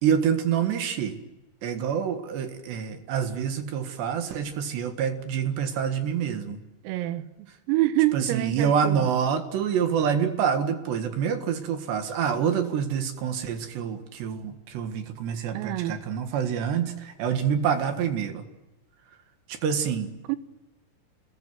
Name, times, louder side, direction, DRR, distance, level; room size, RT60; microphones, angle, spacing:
voice 1, 0.0-1.2 1.6-6.6 8.1-18.5 19.5-20.1, right 7 dB, 65° right, 3.6 m, -27 dB
voice 2, 6.8-7.3 7.7-9.1 15.5-16.0 20.3-20.4, right 16 dB, 90° right, 3.9 m, -26 dB
30.0 x 20.5 x 7.8 m
omnidirectional pair, 6.0 m